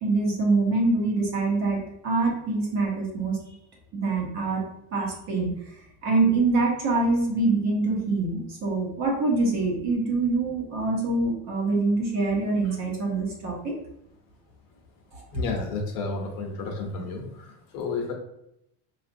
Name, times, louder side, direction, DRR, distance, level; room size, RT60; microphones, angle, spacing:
voice 1, 0.0-3.4 3.9-4.6 4.9-5.5 6.0-13.7 15.1-15.2, right 3 dB, 40° right, -2 dB, 0.9 m, -25 dB
voice 2, 15.3-18.1, left 3 dB, 55° left, 2 dB, 0.8 m, -32 dB
4.1 x 2.4 x 2.6 m, 0.80 s
cardioid pair, 180°, 43 cm